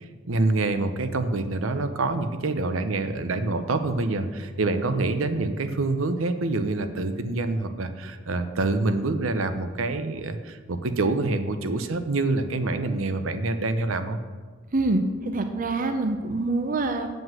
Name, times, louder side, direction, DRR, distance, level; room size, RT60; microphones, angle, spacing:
voice 1, 0.3-14.2, right 2 dB, 80° right, 9 dB, 0.7 m, -26 dB
voice 2, 14.7-17.1, right 2 dB, 40° right, 7 dB, 0.6 m, -25 dB
7.7 x 5.3 x 7.5 m, 1.5 s
head